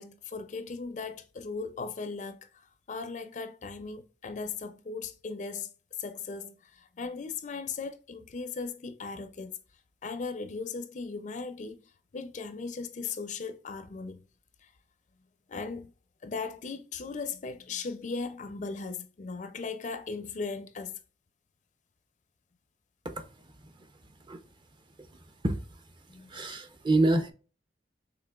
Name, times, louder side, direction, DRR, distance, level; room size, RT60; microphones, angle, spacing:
voice 1, 0.0-2.5 2.9-5.7 6.0-9.6 10.0-11.8 12.1-14.2 14.6-14.7 15.5-15.9 16.2-20.9 26.1-26.3, left 4 dB, 45° left, 0.4 m, -37 dB
voice 2, 26.3-27.3, right 2 dB, 25° right, 0.6 m, -25 dB
5.9 x 3.4 x 2.3 m
head